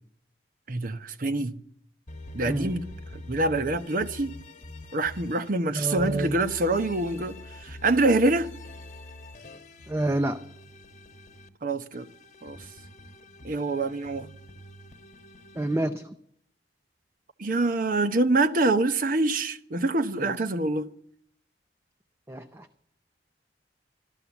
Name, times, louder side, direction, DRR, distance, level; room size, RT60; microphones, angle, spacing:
voice 1, 0.7-1.6 2.3-2.8 3.1-4.3 4.9-8.5 11.6-12.1 12.4-12.6 13.4-14.3 17.4-20.9, right 2 dB, 50° right, 0.9 m, -25 dB
sound 1, 2.1-5.5 5.9-11.5 11.9-15.8, left 1 dB, 40° left, 1.1 m, -45 dB
voice 2, 5.8-6.4 9.9-10.4 15.5-16.2 22.3-22.7, right 1 dB, 15° right, 0.5 m, -28 dB
13.5 x 12.5 x 7.1 m
head